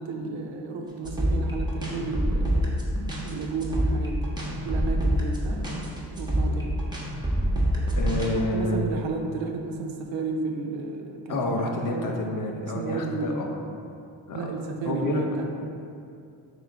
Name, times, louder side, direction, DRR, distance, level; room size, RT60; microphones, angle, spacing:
voice 1, 0.0-2.7 3.2-4.4 4.6-6.8 8.2-12.1 12.6-13.5 14.3-15.5, right 3 dB, 65° right, 3 dB, 0.6 m, -32 dB
sound 1, 1.0-8.3, equal, 10° right, 0.7 m, -26 dB
voice 2, 8.0-8.8 11.3-13.6 14.3-14.5 14.8-15.2 15.6-15.7, left 2 dB, 40° left, 1 dB, 0.5 m, -28 dB
3.2 x 3.1 x 3.7 m, 2.5 s
cardioid pair, 70°, 49 cm